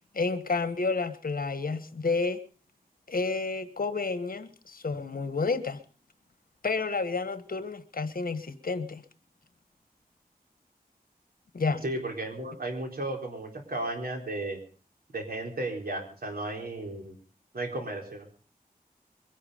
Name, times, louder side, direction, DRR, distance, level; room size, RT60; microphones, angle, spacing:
voice 1, 0.1-2.4 3.1-5.8 6.6-9.0 11.5-11.8, left 4 dB, 65° left, 1.4 m, -30 dB
voice 2, 11.8-14.6 15.1-17.2 17.5-18.3, right 2 dB, 70° right, 4.2 m, -34 dB
23.0 x 11.0 x 5.1 m
wide cardioid pair, 85°, 16 cm